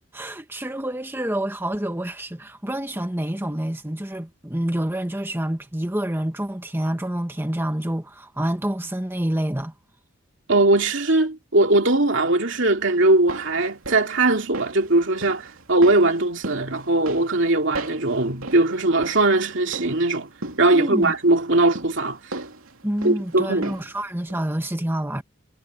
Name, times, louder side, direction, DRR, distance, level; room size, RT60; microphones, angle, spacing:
voice 1, 0.1-9.7 20.7-21.1 22.8-25.2, right 1 dB, 10° right, 1.3 m, -27 dB
voice 2, 10.5-20.3 20.6-22.2 23.0-23.8, right 2 dB, 60° right, 2.9 m, -20 dB
sound 1, 13.0-24.0 24.3-24.4, right 2 dB, 75° right, 2.7 m, -38 dB
head